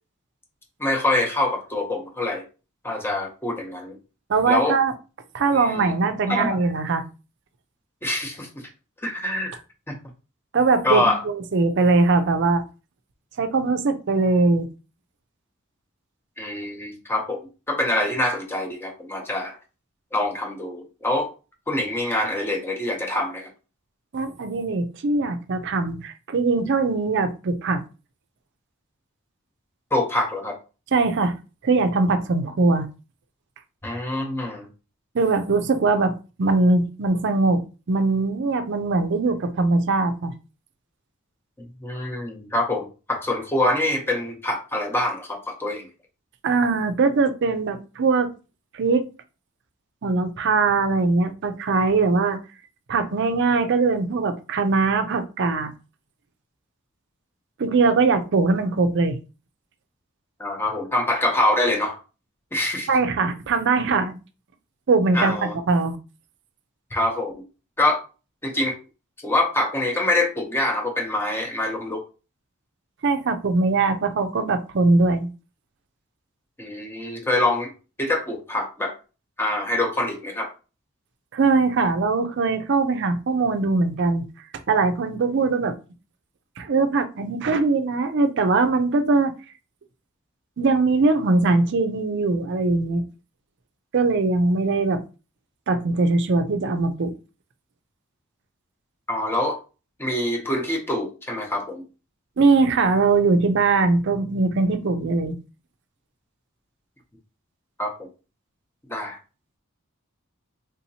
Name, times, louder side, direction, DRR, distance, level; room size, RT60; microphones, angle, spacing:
voice 1, 0.8-2.4 2.8-4.0 4.5-4.8 5.5-5.9 6.3-6.5 8.0-8.5 9.0-9.6 9.9-10.0 10.8-11.2 16.4-17.4 17.7-19.6 20.1-21.3 21.7-23.5 29.9-30.6 33.8-34.7 41.8-45.9 60.4-62.0 62.5-62.9 65.1-65.5 66.9-67.3 67.8-68.0 68.4-68.8 69.2-72.0 76.6-77.7 78.0-78.9 79.4-80.5 99.1-99.6 100.0-101.9 107.8-107.9 108.9-109.2, left 1 dB, 10° left, 0.7 m, -25 dB
voice 2, 4.3-4.9 5.3-7.0 10.5-12.6 13.4-14.7 24.1-27.8 30.9-31.3 31.6-32.9 35.1-36.1 36.4-40.3 46.4-48.3 48.7-49.0 50.0-52.4 52.9-55.7 57.6-59.2 62.9-64.2 64.9-66.0 73.0-75.3 81.3-84.2 84.7-85.8 86.6-89.3 90.6-93.0 93.9-95.0 95.7-97.1 102.4-105.3, right 3 dB, 55° right, 0.5 m, -21 dB
3.7 x 2.8 x 2.7 m
head